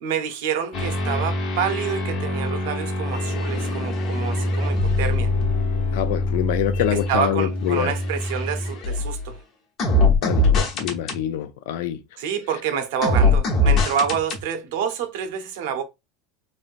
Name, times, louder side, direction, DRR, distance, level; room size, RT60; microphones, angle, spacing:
voice 1, 0.0-5.3 6.9-9.4 12.2-15.8, right 8 dB, 75° right, 0.7 m, -27 dB
sound 1, 0.7-9.3 9.8-11.2 13.0-14.4, left 2 dB, 35° left, 1.0 m, -23 dB
voice 2, 5.9-7.9 10.2-12.0, left 12 dB, 70° left, 0.4 m, -25 dB
3.2 x 2.5 x 2.5 m
cardioid pair, 170°, 0 cm